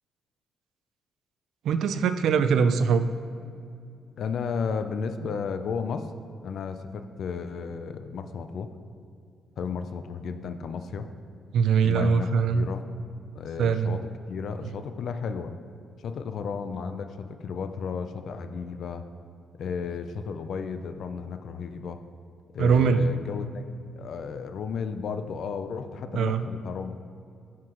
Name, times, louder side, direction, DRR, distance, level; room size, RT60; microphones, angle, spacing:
voice 1, 1.6-3.0 11.5-12.7 13.6-14.0 14.6-14.7 22.6-23.0 26.1-26.5, right 6 dB, 75° right, 9 dB, 0.5 m, -22 dB
voice 2, 4.2-6.1 6.4-8.7 9.6-11.1 11.8-12.9 13.3-14.0 14.3-15.5 16.0-19.0 19.6-22.0 22.5-23.7 24.0-27.0, left 5 dB, 65° left, 8 dB, 0.5 m, -33 dB
16.0 x 5.9 x 3.0 m, 2.4 s
cardioid pair, 90°, 0 cm